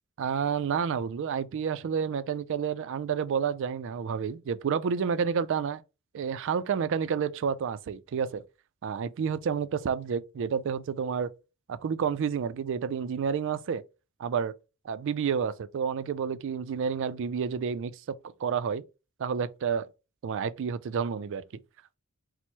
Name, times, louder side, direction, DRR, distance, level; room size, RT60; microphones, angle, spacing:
voice 1, 0.2-5.8 6.1-8.4 8.8-11.3 11.7-13.8 14.2-14.5 14.8-18.8 19.2-19.9 20.2-21.4, right 6 dB, 55° right, 0.3 m, -30 dB
4.3 x 2.0 x 4.4 m
head